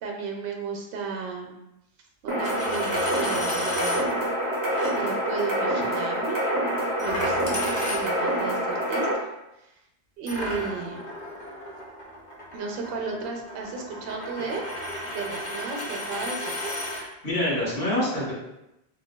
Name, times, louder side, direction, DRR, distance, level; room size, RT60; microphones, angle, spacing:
voice 1, 0.0-1.6 2.2-4.2 4.9-6.4 7.0-9.1 9.6-9.7 10.2-11.0 12.5-14.6 15.0-16.7, right 4 dB, 70° right, 2 dB, 0.7 m, -34 dB
Coin (dropping), 2.3-4.0 4.7-4.9 7.0-8.4 10.3-17.0, left 1 dB, 50° left, 0.7 m, -34 dB
sound 1, 2.3-9.1, equal, 35° right, 0.4 m, -26 dB
voice 2, 17.0-18.3, left 1 dB, 75° left, -8 dB, 1.5 m, -26 dB
3.8 x 2.2 x 2.2 m, 0.89 s
omnidirectional pair, 1.1 m